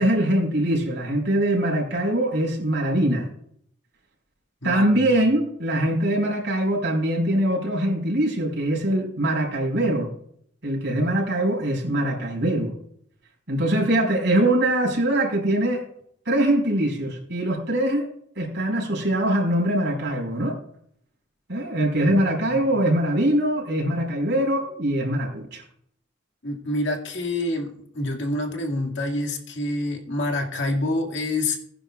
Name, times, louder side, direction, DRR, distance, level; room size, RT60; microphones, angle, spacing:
voice 1, 0.0-3.3 4.6-10.1 10.6-12.7 13.5-15.8 16.2-18.1 18.3-20.6 21.5-25.6, right 1 dB, 65° right, 0 dB, 5.1 m, -22 dB
voice 2, 4.6-5.0 22.1-22.2 22.4-22.8 26.4-31.6, left 2 dB, 70° left, 2 dB, 2.1 m, -27 dB
19.0 x 10.5 x 2.4 m, 0.67 s
head